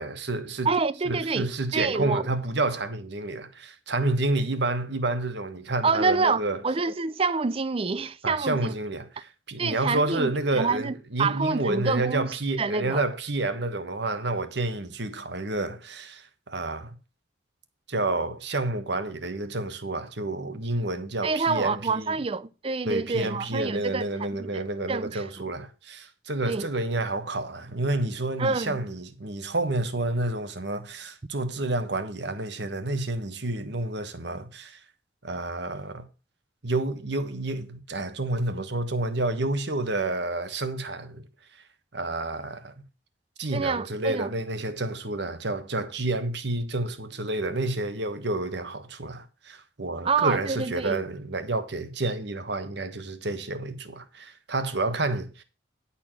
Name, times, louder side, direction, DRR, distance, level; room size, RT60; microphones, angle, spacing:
voice 1, 0.0-0.7 1.1-6.6 8.2-17.0 17.9-22.2 22.8-34.8 35.2-36.1 36.6-41.3 41.9-42.7 43.4-55.4, right 2 dB, 60° right, 1.3 m, -29 dB
voice 2, 0.6-2.3 5.8-8.7 9.6-13.0 21.2-24.6 24.9-25.5 26.4-26.7 28.4-28.8 43.5-44.3 50.0-51.0, right 4 dB, 30° right, 0.5 m, -27 dB
11.0 x 4.3 x 7.4 m
head